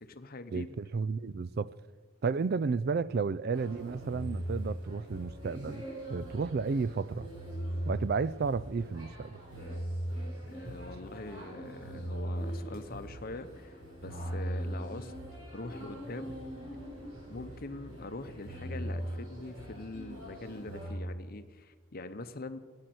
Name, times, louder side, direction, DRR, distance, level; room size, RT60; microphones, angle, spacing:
voice 1, 0.0-0.7 10.5-15.1 15.5-16.3 17.3-22.6, left 2 dB, 45° left, 0.9 m, -43 dB
voice 2, 0.5-1.7 2.2-7.3 7.9-9.4, right 4 dB, 50° right, 0.4 m, -32 dB
sound 1, 3.5-20.9, right 1 dB, 80° right, 5.6 m, -40 dB
14.5 x 9.7 x 7.9 m
head